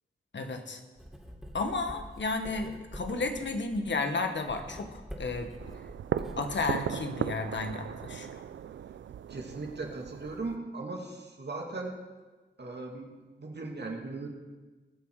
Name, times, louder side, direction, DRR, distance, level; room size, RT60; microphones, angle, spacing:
voice 1, 0.3-0.8 1.5-5.5 6.4-8.3, left 3 dB, 75° left, 6 dB, 1.4 m, -32 dB
Writing, 1.0-7.0, equal, ahead, 3.0 m, -46 dB
sound 1, 5.6-10.6, right 9 dB, 80° right, 0.4 m, -37 dB
voice 2, 9.3-11.9 12.6-13.1 13.4-14.3, right 3 dB, 65° right, 1 dB, 2.4 m, -38 dB
20.5 x 7.2 x 4.8 m, 1.3 s
cardioid pair, 55°, 19 cm